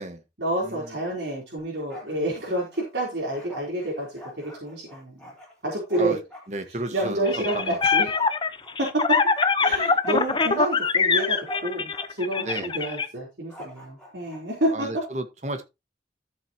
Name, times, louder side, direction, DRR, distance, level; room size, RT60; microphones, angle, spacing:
voice 1, 0.4-5.3 5.6-6.2 6.9-8.1 8.8-9.2 9.6-14.9, right 1 dB, 80° right, 4.0 m, -28 dB
Bark, 1.6-2.2 2.4-6.5 7.0-8.8 9.1-12.1 12.3-12.8 13.5-14.4, left 1 dB, 5° left, 3.8 m, -43 dB
voice 2, 6.5-7.9 12.4-12.7 14.7-15.6, right 2 dB, 40° right, 1.5 m, -33 dB
sound 1, 7.3-13.0, left 5 dB, 25° left, 0.7 m, -23 dB
13.0 x 7.3 x 3.0 m
head